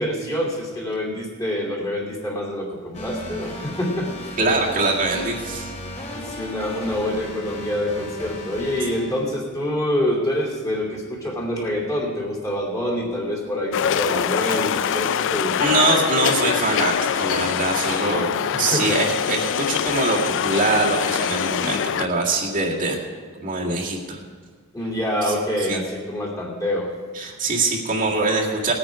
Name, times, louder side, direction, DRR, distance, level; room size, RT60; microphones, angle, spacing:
voice 1, 0.0-4.4 6.1-15.8 18.1-18.9 24.7-26.9 27.2-27.3, left 1 dB, 15° left, -3 dB, 2.6 m, -26 dB
sound 1, 2.9-9.2, equal, 35° left, 3.0 m, -35 dB
voice 2, 4.4-5.7 15.6-18.3 18.6-23.0 23.4-24.2 25.3-25.4 25.7-25.8 27.1-28.7, right 2 dB, 40° right, -3 dB, 1.9 m, -23 dB
sound 2, 13.7-22.1, left 8 dB, 60° left, 0.4 m, -24 dB
18.5 x 9.5 x 5.0 m, 1.5 s
head